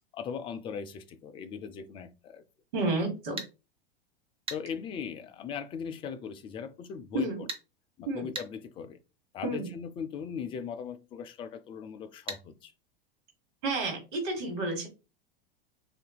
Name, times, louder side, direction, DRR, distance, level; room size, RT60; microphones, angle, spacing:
voice 1, 0.1-2.4 4.5-7.5 8.0-9.0 9.3-12.7, left 7 dB, 20° left, 0.3 m, -39 dB
voice 2, 2.7-3.4 7.1-7.4 8.1-8.3 9.4-9.7 13.6-14.9, right 2 dB, 55° right, 1.3 m, -31 dB
sound 1, 3.4-3.5 4.5-4.6 7.5-7.7 8.4-8.5 12.3-12.4, right 3 dB, 20° right, 0.7 m, -36 dB
3.8 x 2.5 x 2.2 m
figure-of-eight pair, 90°, 29 cm